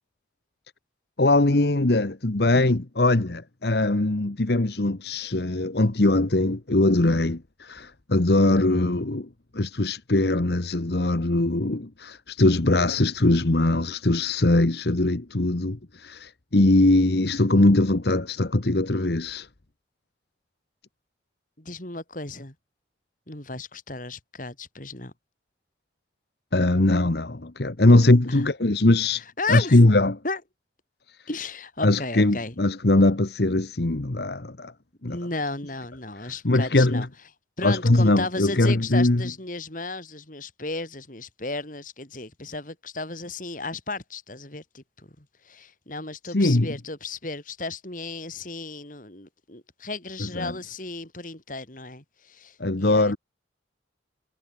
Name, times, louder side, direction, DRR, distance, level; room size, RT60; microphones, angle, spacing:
voice 1, 1.2-9.3 9.5-19.5 26.5-29.2 29.5-30.2 31.8-34.7 35.0-35.2 36.4-37.0 37.6-39.2 46.3-46.7 50.4-50.5 52.6-53.2, left 2 dB, 60° left, 1.2 m, -21 dB
voice 2, 21.6-22.5 23.3-25.1 28.3-28.5 29.1-29.8 30.2-30.4 31.3-32.5 35.0-37.1 37.6-53.2, left 3 dB, 45° left, 3.4 m, -34 dB
head